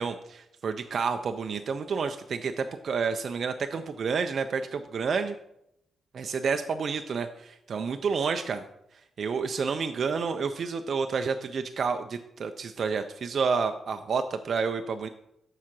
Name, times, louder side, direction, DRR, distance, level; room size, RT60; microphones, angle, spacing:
voice 1, 0.0-5.4 6.1-8.7 9.2-15.1, right 5 dB, 55° right, 7 dB, 0.4 m, -29 dB
7.4 x 4.9 x 6.0 m, 0.81 s
cardioid pair, 100°, 0 cm